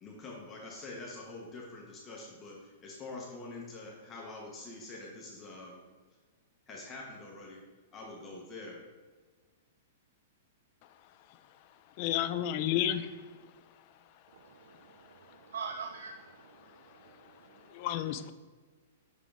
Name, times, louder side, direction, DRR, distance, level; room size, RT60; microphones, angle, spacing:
voice 1, 0.0-5.8 6.7-7.6 7.9-8.8, left 2 dB, 15° left, 0.9 m, -45 dB
voice 2, 12.0-13.1 17.7-18.3, left 11 dB, 35° left, 0.3 m, -31 dB
voice 3, 14.3-17.9, right 5 dB, 85° right, 0.4 m, -45 dB
7.2 x 3.7 x 3.6 m
hypercardioid pair, 165°, 0 cm